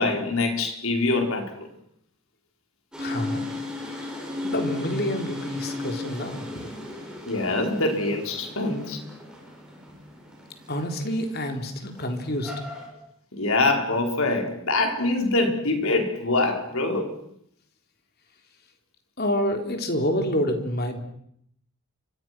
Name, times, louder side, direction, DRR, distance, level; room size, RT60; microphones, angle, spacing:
voice 1, 0.0-1.7 7.3-9.0 13.3-17.1, left 2 dB, 70° left, 5.3 m, -24 dB
sound 1, 2.9-12.9, left 2 dB, 5° right, 7.7 m, -36 dB
voice 2, 3.0-3.5 3.8-4.2 4.4-6.5 10.7-12.5 19.2-21.0, equal, 45° left, 3.8 m, -28 dB
29.5 x 25.5 x 6.3 m
head